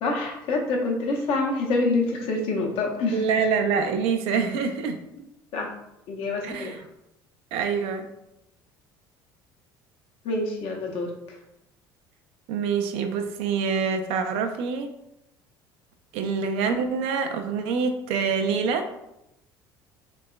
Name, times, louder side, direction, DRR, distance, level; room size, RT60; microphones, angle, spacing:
voice 1, 0.0-3.2 5.5-5.7 6.1-6.8 10.2-11.1, left 3 dB, 55° left, 0 dB, 0.6 m, -26 dB
voice 2, 3.1-5.0 6.4-6.8 7.5-8.1 12.5-14.9 16.1-18.9, right 5 dB, 60° right, 6 dB, 0.3 m, -25 dB
3.4 x 2.3 x 2.3 m, 0.86 s
figure-of-eight pair, 60°, 12 cm